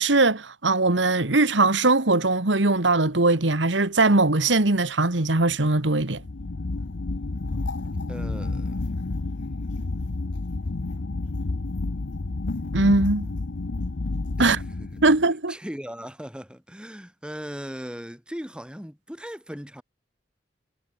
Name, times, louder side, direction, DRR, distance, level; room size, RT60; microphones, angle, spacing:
voice 1, 0.0-6.2 12.7-13.3 14.4-14.6 15.0-15.5, right 2 dB, 90° right, 2.0 m, -20 dB
sound 1, 6.1-15.3, left 3 dB, 85° left, 0.8 m, -30 dB
voice 2, 8.1-8.9 14.4-15.2 15.5-19.8, equal, 5° right, 6.5 m, -38 dB
head